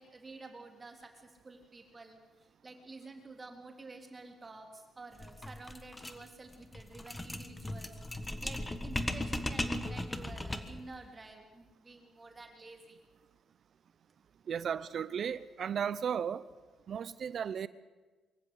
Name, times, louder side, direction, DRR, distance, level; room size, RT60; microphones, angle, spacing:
voice 1, 0.0-8.0 8.4-13.0, right 3 dB, 30° right, 4 dB, 3.3 m, -50 dB
sound 1, 5.2-10.9, left 1 dB, 15° left, 1.6 m, -37 dB
voice 2, 14.5-16.5 16.9-17.7, right 7 dB, 55° right, 17 dB, 0.6 m, -35 dB
24.0 x 14.5 x 8.3 m, 1.3 s
cardioid pair, 90°, 0 cm